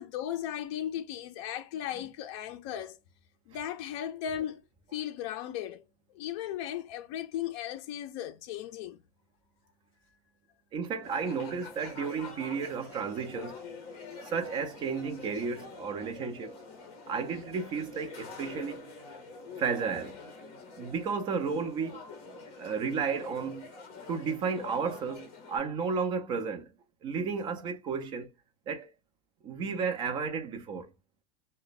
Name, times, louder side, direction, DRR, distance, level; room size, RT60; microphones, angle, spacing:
voice 1, 0.0-3.0 3.5-4.6 4.9-5.8 6.1-9.0, left 10 dB, 50° left, 0.4 m, -36 dB
voice 2, 10.7-13.6 14.2-16.6 17.1-18.9 19.6-20.2 20.8-22.0 22.6-23.7 24.1-26.7 27.0-28.3 28.7-28.9 29.4-30.9, right 5 dB, 25° right, 0.5 m, -33 dB
sound 1, 11.0-25.6, left 4 dB, 30° left, 1.0 m, -46 dB
3.0 x 2.1 x 4.0 m
supercardioid pair, 175°, 18 cm